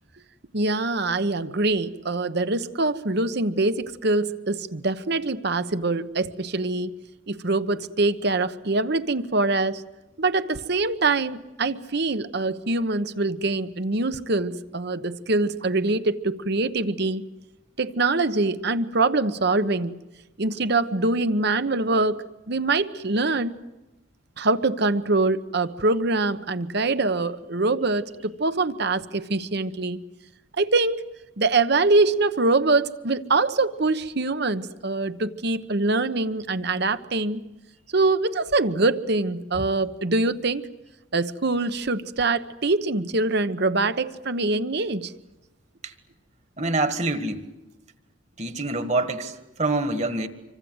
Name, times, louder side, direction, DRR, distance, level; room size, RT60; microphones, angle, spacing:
voice 1, 0.5-6.9 7.3-9.8 10.2-17.2 17.8-20.0 20.4-23.5 24.4-30.0 30.6-31.0 31.4-37.4 37.9-40.7 41.1-45.1, right 3 dB, 55° right, 1.0 m, -24 dB
voice 2, 46.6-47.5 48.4-50.3, right 2 dB, 35° right, 1.7 m, -26 dB
26.5 x 25.0 x 8.0 m
head